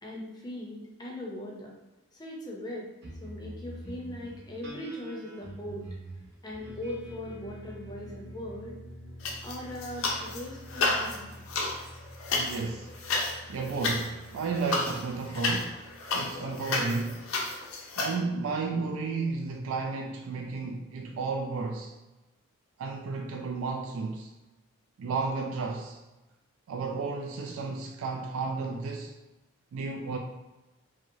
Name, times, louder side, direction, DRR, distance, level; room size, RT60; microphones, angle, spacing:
voice 1, 0.0-1.7 2.1-2.9 3.2-5.9 6.4-8.8 9.4-11.2, left 1 dB, 20° left, -2 dB, 0.6 m, -39 dB
sound 1, 3.0-17.7, equal, 50° right, 0.9 m, -47 dB
sound 2, 9.2-10.4 10.7-18.1, left 3 dB, 80° left, 0.5 m, -31 dB
voice 2, 12.3-12.9 13.5-15.8 16.1-17.3 18.0-22.0 22.8-24.3 25.0-26.0 26.7-29.2 29.7-30.2, right 4 dB, 80° right, 2 dB, 0.3 m, -33 dB
2.9 x 2.8 x 2.6 m, 1.1 s
head